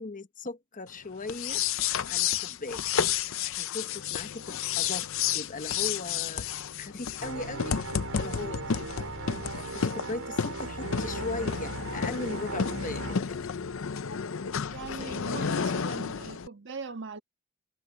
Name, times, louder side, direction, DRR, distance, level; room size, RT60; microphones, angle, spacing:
voice 1, 0.0-1.6 2.0-2.8 3.4-6.5 6.8-7.9 8.2-9.1 9.6-13.5 15.0-15.5, left 3 dB, 35° left, 1.0 m, -38 dB
sound 1, 1.2-16.5, left 7 dB, 60° left, 0.6 m, -31 dB
sound 2, 7.2-13.2, right 2 dB, 75° right, 4.9 m, -38 dB
voice 2, 14.6-17.2, right 4 dB, 55° right, 1.5 m, -40 dB
head